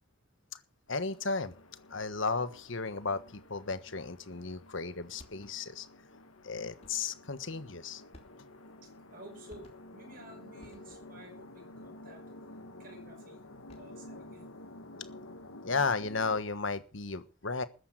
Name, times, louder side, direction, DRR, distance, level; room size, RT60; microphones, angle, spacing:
sound 1, 0.9-16.4, left 1 dB, 90° left, 1.7 m, -51 dB
voice 1, 0.9-1.5 1.9-5.9 6.4-8.0 15.6-17.6, left 4 dB, 65° left, 12 dB, 1.4 m, -34 dB
sound 2, 5.2-5.8 6.8-7.2 8.1-8.7 9.5-10.1 10.6-11.3 13.5-14.1, left 1 dB, 30° left, 3.0 m, -58 dB
voice 2, 8.8-12.2 12.8-13.4 13.8-14.5, right 1 dB, 45° right, 3 dB, 5.5 m, -53 dB
14.0 x 10.0 x 6.5 m, 0.36 s
head